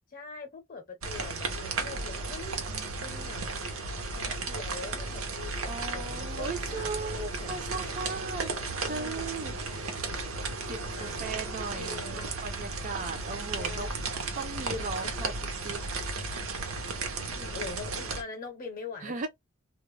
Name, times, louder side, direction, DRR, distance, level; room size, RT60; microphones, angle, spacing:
voice 1, 0.1-2.6 3.0-3.4 4.1-8.2 8.8-9.3 10.9-11.3 11.7-12.4 13.6-13.9 17.2-19.3, left 4 dB, 40° left, 0.7 m, -43 dB
sound 1, 1.0-18.2, right 3 dB, 75° right, 0.7 m, -34 dB
voice 2, 2.7-3.4 5.6-8.5 8.9-10.0 10.7-13.9 14.4-15.3 15.6-15.8 19.0-19.3, right 4 dB, 35° right, 0.4 m, -37 dB
2.3 x 2.0 x 3.1 m
head